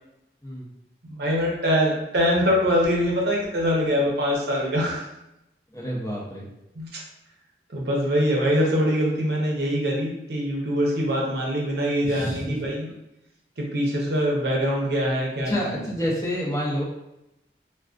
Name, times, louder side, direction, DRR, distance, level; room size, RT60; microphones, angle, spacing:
voice 1, 1.0-5.0 6.8-7.0 7.7-12.9 13.6-15.8, equal, 70° right, -2 dB, 0.6 m, -23 dB
voice 2, 5.7-6.5 12.0-12.6 15.5-16.8, equal, 20° left, -4 dB, 0.5 m, -28 dB
2.3 x 2.2 x 2.4 m, 0.87 s
head